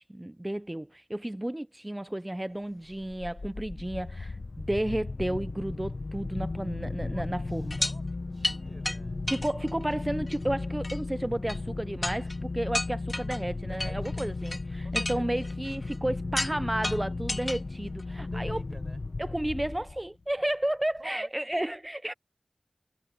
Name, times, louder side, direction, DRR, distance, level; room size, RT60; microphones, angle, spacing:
voice 1, 0.0-7.8 9.3-18.6 19.2-22.1, right 1 dB, 20° right, 0.4 m, -32 dB
sound 1, 2.9-20.2, left 3 dB, 80° left, 0.9 m, -35 dB
voice 2, 7.0-9.2 13.7-14.2 14.8-15.3 18.1-19.0 21.0-21.5, right 2 dB, 60° right, 6.3 m, -49 dB
sound 2, 7.7-8.0 8.4-8.6 8.9-9.0 9.3-9.9 10.3-10.4 10.8-11.0 11.5-11.6 12.0-12.4 12.7-13.4 13.8-14.6 14.9-16.0 16.4-16.6 16.8-17.6 18.0-18.1, left 1 dB, 40° left, 2.1 m, -32 dB
wide cardioid pair, 60°, 0 cm